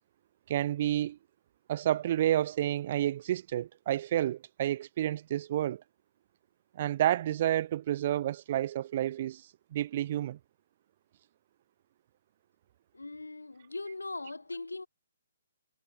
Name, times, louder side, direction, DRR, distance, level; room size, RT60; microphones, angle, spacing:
voice 1, 0.5-1.2 1.7-5.8 6.7-9.4 9.7-10.4, right 12 dB, 40° right, 0.3 m, -30 dB
voice 2, 12.9-14.9, left 2 dB, 85° left, 2.5 m, -40 dB
figure-of-eight pair, 135°, 0 cm